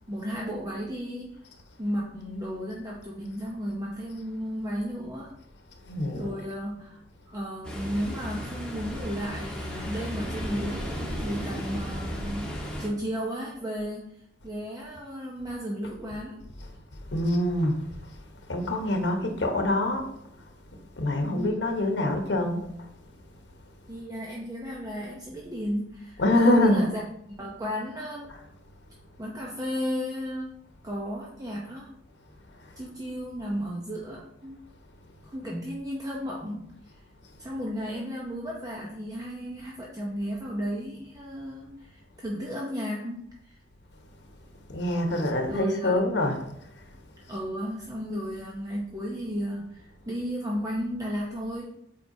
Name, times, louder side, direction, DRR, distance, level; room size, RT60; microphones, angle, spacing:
voice 1, 0.1-1.4 1.8-5.4 6.1-7.0 7.3-14.1 14.4-16.5 21.2-21.7 23.9-27.0 27.4-28.4 29.2-30.6 30.8-31.9 32.8-34.6 35.3-36.9 37.4-43.6 45.4-46.3 47.2-51.7, equal, 20° right, 0.8 m, -34 dB
voice 2, 5.8-6.3 16.6-16.7 17.1-17.8 18.5-20.1 21.0-22.7 26.2-26.9 28.3-28.4 32.6-32.7 44.7-46.4, left 1 dB, 70° left, 1.1 m, -25 dB
Ocean, 7.6-12.9, equal, 5° left, 1.4 m, -34 dB
7.8 x 4.7 x 2.7 m
head